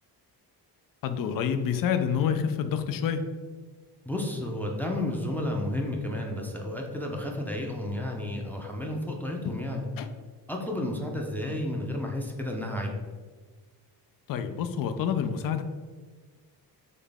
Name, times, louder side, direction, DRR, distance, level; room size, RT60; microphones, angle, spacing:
voice 1, 1.0-3.2 9.4-9.6 10.0-10.1 14.3-15.6, left 7 dB, 55° left, 9 dB, 0.4 m, -28 dB
voice 2, 4.1-9.9 10.5-12.9, left 1 dB, 5° left, 0 dB, 0.5 m, -32 dB
4.0 x 3.1 x 3.4 m, 1.4 s
cardioid pair, 105°, 41 cm